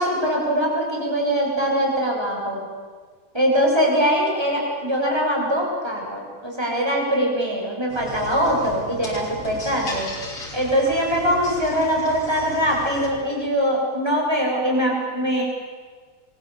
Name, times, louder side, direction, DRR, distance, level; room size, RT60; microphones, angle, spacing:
voice 1, 0.0-2.7 3.3-10.1 10.5-15.4, equal, 10° right, -1 dB, 7.6 m, -22 dB
sound 1, 7.9-13.1, left 2 dB, 45° left, 6.2 m, -36 dB
29.0 x 23.5 x 8.6 m, 1.5 s
omnidirectional pair, 3.4 m